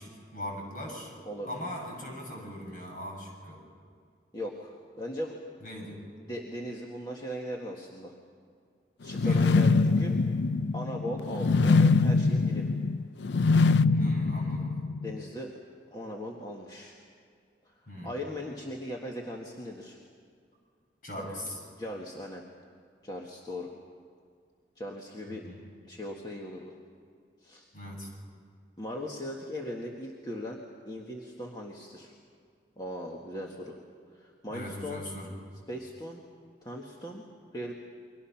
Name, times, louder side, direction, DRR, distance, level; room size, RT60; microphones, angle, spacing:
voice 1, 0.0-1.1 1.4-3.6 5.6-6.0 9.2-9.5 13.9-14.7 17.9-18.1 21.0-21.6 25.3-25.6 27.7-28.1 34.5-35.3, left 1 dB, 50° left, 0 dB, 6.9 m, -40 dB
voice 2, 1.3-1.6 4.3-5.4 6.3-8.1 9.0-10.2 10.7-12.7 15.0-15.5 15.9-17.0 17.7-20.0 21.3-21.4 21.7-22.4 23.0-23.7 24.8-25.5 25.8-26.8 27.4-27.7 28.8-32.1 32.8-33.8 34.1-35.0 35.7-36.2 36.6-37.3 37.5-37.7, equal, 25° left, -1 dB, 1.7 m, -39 dB
sound 1, 9.1-15.2, left 3 dB, 80° left, 0.5 m, -24 dB
30.0 x 23.5 x 5.9 m, 2.2 s
head